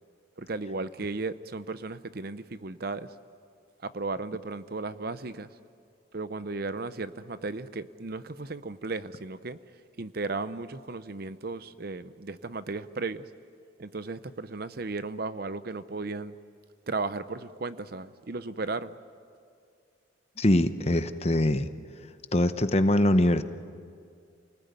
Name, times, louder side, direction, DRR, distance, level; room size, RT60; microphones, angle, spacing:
voice 1, 0.4-3.1 3.8-5.5 6.1-9.6 10.0-13.3 13.8-16.3 16.9-19.0, right 3 dB, 50° right, 0.7 m, -35 dB
voice 2, 20.4-21.7 22.3-23.4, left 1 dB, 30° left, 0.9 m, -23 dB
29.0 x 19.0 x 9.4 m
head